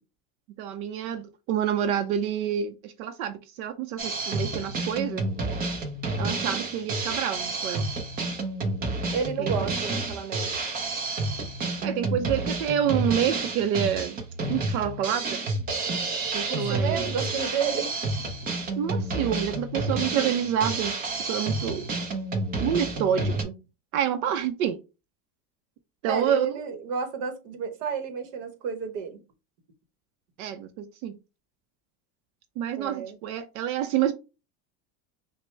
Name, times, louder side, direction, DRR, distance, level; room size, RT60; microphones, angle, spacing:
voice 1, 0.6-5.3 6.2-7.9 9.4-9.5 11.8-14.2 14.5-15.4 16.3-17.2 18.8-20.9 21.3-21.9 22.6-23.5 23.9-24.8 26.0-26.5 30.4-31.1 32.6-34.1, right 9 dB, 85° right, 0.7 m, -28 dB
Drum kit, 4.0-23.4, right 2 dB, 20° right, 0.5 m, -30 dB
voice 2, 9.1-10.6 16.5-18.3 26.1-29.2 32.7-33.2, right 6 dB, 50° right, 1.0 m, -31 dB
5.9 x 2.2 x 3.2 m
supercardioid pair, 165°, 42 cm